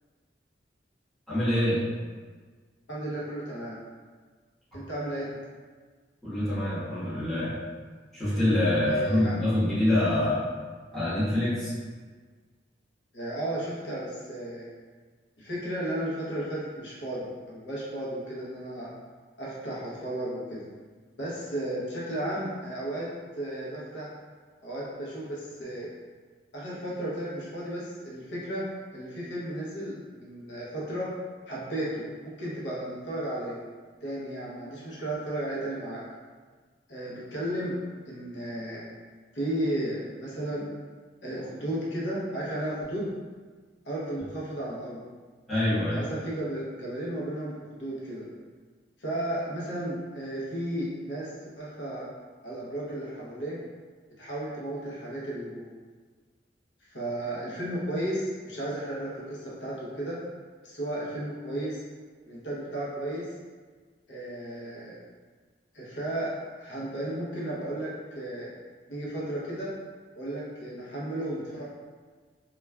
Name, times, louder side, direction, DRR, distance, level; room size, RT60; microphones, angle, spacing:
voice 1, 1.3-1.8 6.2-7.5 8.1-10.4 10.9-11.7 45.5-46.0, left 1 dB, ahead, -13 dB, 1.2 m, -25 dB
voice 2, 2.9-3.8 4.7-5.4 8.9-9.4 13.1-14.7 15.4-18.9 19.4-20.7 21.2-23.1 23.4-24.1 24.6-25.9 26.5-28.7 28.9-31.1 31.5-33.6 34.0-36.0 36.9-37.8 38.1-38.8 39.3-40.7 41.2-43.1 43.8-45.0 45.9-48.3 49.0-52.1 52.4-53.6 54.2-55.7 56.9-60.2 60.6-61.8 62.3-63.3 64.1-65.0 65.7-68.5 68.9-69.7 70.1-71.6, right 1 dB, 85° left, -6 dB, 0.7 m, -34 dB
3.2 x 2.3 x 2.2 m, 1.5 s
head